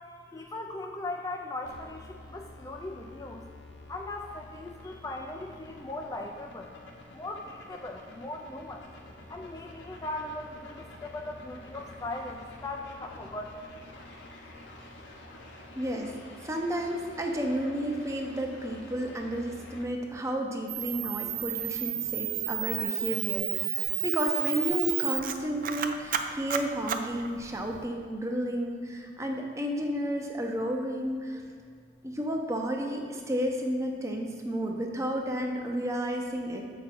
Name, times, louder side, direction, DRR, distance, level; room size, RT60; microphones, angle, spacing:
voice 1, 0.3-3.4 3.9-6.7 7.1-8.8 9.3-13.6, left 2 dB, 20° left, 2 dB, 0.3 m, -39 dB
sound 1, 1.6-19.8, left 2 dB, 85° left, 1.0 m, -49 dB
voice 2, 15.7-16.1 16.4-31.4 32.0-36.6, equal, 15° right, 2 dB, 0.7 m, -32 dB
Camera, 20.7-27.8, right 11 dB, 50° right, 0.4 m, -32 dB
7.4 x 5.9 x 4.1 m, 2.2 s
head